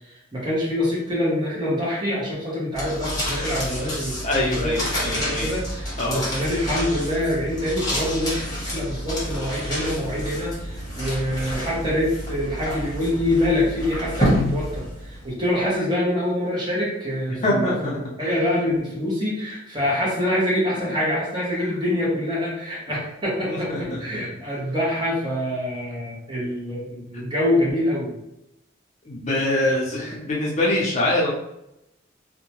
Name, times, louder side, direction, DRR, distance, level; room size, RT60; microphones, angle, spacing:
voice 1, 0.3-17.9 18.2-28.1, left 1 dB, 20° right, -6 dB, 0.9 m, -25 dB
sound 1, 2.7-15.3, equal, 20° left, 1.0 m, -29 dB
voice 2, 4.2-5.5 6.0-6.2 17.4-18.0 19.8-19.9 21.6-21.7 22.9-23.0 23.5-24.0 29.1-31.3, left 1 dB, 35° left, -4 dB, 0.6 m, -24 dB
2.7 x 2.2 x 2.9 m, 0.85 s
head